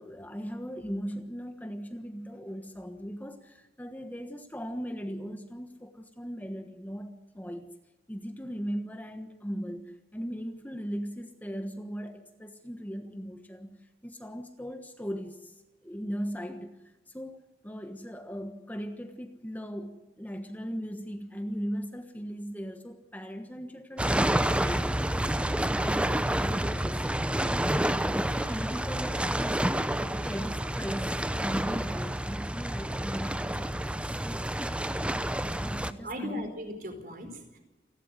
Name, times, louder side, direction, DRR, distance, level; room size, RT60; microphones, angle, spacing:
voice 1, 0.0-7.6 8.1-34.5 35.4-36.5, equal, 10° left, 6 dB, 1.3 m, -38 dB
sound 1, 24.0-35.9, right 1 dB, 5° right, 0.7 m, -29 dB
voice 2, 36.0-37.6, equal, 50° right, 6 dB, 4.5 m, -38 dB
28.5 x 12.0 x 8.2 m, 1.1 s
head